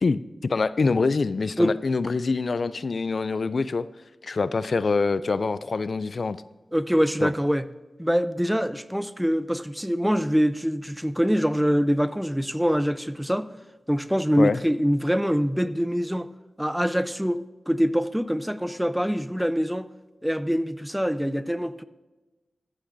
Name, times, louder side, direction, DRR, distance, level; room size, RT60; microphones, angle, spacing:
voice 1, 0.0-3.9 4.2-6.4 7.2-7.3 14.4-14.6, left 4 dB, 60° left, 15 dB, 0.3 m, -25 dB
voice 2, 6.7-7.6 8.0-13.5 13.9-16.3 16.6-19.9 20.2-21.8, equal, 5° right, 13 dB, 0.5 m, -24 dB
14.0 x 11.5 x 2.6 m, 1.1 s
wide cardioid pair, 65°, 0 cm